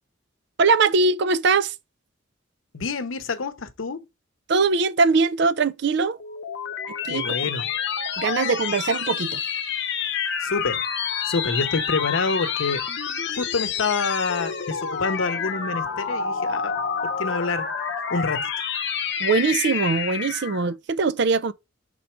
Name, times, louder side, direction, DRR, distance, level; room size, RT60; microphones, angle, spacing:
voice 1, 0.6-1.7 4.5-6.2 7.0-7.2 8.2-9.4 19.2-21.5, right 4 dB, 60° right, 0.5 m, -21 dB
voice 2, 2.7-4.0 7.1-7.7 10.4-10.8 11.2-12.9 13.3-16.8 17.0-17.7 18.1-18.5, left 4 dB, 90° left, 0.8 m, -27 dB
sound 1, 6.0-20.7, left 6 dB, 60° left, 0.8 m, -28 dB
5.9 x 3.9 x 4.4 m
head